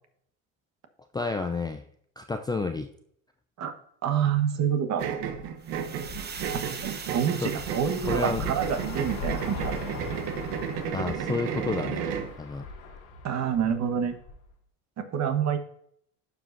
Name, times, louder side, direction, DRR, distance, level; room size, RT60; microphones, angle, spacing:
voice 1, 1.1-1.8 2.2-2.9 7.4-7.5 8.1-8.5 10.9-12.1 12.4-12.7, left 3 dB, 10° left, 5 dB, 0.4 m, -30 dB
voice 2, 4.0-5.0 6.8-9.7 13.2-14.2 15.0-15.6, right 8 dB, 45° right, 8 dB, 1.3 m, -27 dB
sound 1, 5.0-12.3, right 8 dB, 65° right, 1.1 m, -33 dB
sound 2, 5.2-14.5, left 3 dB, 75° left, 1.8 m, -40 dB
sound 3, 5.6-10.7, right 6 dB, 25° right, 0.9 m, -42 dB
11.5 x 4.9 x 2.6 m, 0.67 s
supercardioid pair, 95°, 38 cm